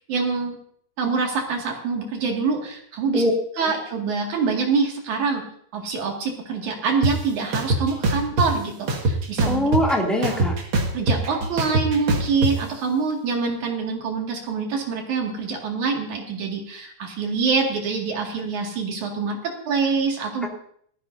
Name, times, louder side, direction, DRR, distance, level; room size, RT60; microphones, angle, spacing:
voice 1, 0.1-0.6 1.0-3.2 3.6-5.4 5.7-9.6 10.2-10.4 10.9-20.5, right 5 dB, 75° right, 0 dB, 3.6 m, -25 dB
sound 1, 7.0-7.1 7.5-8.5 8.9-9.9 10.2-12.5, right 2 dB, 45° right, 2.2 m, -22 dB
voice 2, 9.4-10.6 20.4-20.5, equal, ahead, -2 dB, 2.0 m, -22 dB
19.0 x 13.5 x 2.7 m, 0.62 s
omnidirectional pair, 3.5 m